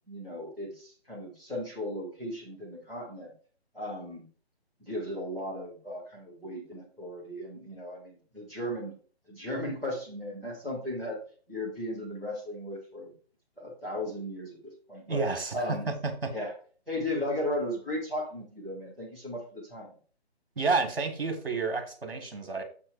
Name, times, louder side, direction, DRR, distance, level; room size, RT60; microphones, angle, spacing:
voice 1, 0.1-3.3 3.7-4.2 4.8-8.9 9.3-11.2 11.5-13.1 13.6-15.2 15.5-15.9 16.3-16.5 16.9-19.9, left 1 dB, ahead, -19 dB, 0.5 m, -36 dB
voice 2, 15.1-15.9 16.2-16.3 20.6-22.6, right 4 dB, 60° right, 5 dB, 2.0 m, -30 dB
7.2 x 4.4 x 4.7 m, 0.41 s
figure-of-eight pair, 140°, 32 cm